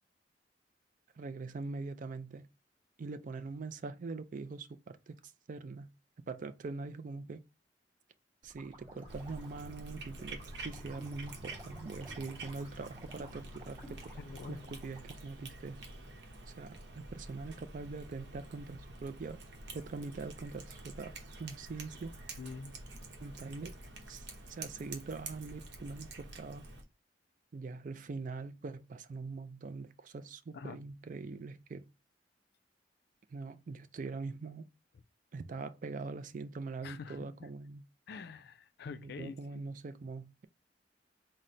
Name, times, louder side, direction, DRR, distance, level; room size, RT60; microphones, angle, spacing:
voice 1, 1.2-2.5 3.0-5.9 6.3-7.4 8.4-14.1 14.5-15.8 16.5-19.4 19.7-21.1 21.4-22.1 23.2-23.7 24.1-26.7 27.5-31.9 33.3-34.7 35.3-37.9 38.9-40.5, right 3 dB, 45° right, 0.4 m, -43 dB
sound 1, 8.4-15.2, right 1 dB, 30° right, 1.2 m, -56 dB
sound 2, 8.8-15.2, left 2 dB, 5° left, 0.8 m, -56 dB
Cat, 9.1-26.8, right 2 dB, 70° right, 0.9 m, -48 dB
voice 2, 14.2-14.8 22.4-22.8 30.5-30.8 36.8-37.5 38.1-39.6, left 5 dB, 60° left, 0.4 m, -46 dB
3.9 x 2.1 x 4.3 m
head